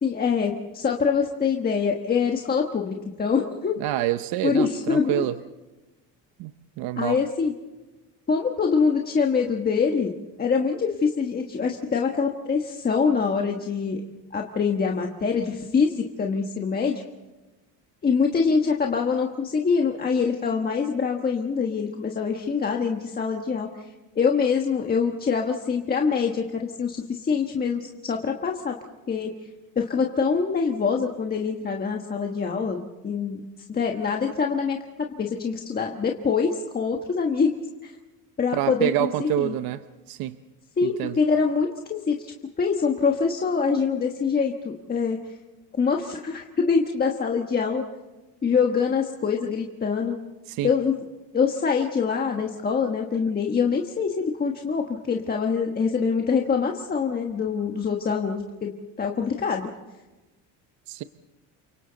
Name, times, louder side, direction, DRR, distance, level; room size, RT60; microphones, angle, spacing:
voice 1, 0.0-3.8 4.4-5.3 7.0-7.5 8.3-10.1 10.4-14.0 14.3-17.0 18.0-23.9 24.1-28.7 29.1-29.3 29.7-33.4 33.7-37.5 37.8-37.9 38.4-39.6 40.8-42.2 42.6-45.2 45.8-47.8 48.4-50.2 50.6-50.9 51.3-58.7 59.0-59.7, left 5 dB, 25° left, 1.4 m, -24 dB
voice 2, 3.8-5.3 6.4-6.5 6.8-7.2 38.5-39.8 40.1-40.4 40.8-41.2 50.5-50.7 60.9-61.0, right 13 dB, 70° right, 0.8 m, -27 dB
29.5 x 25.0 x 4.0 m
cardioid pair, 145°, 37 cm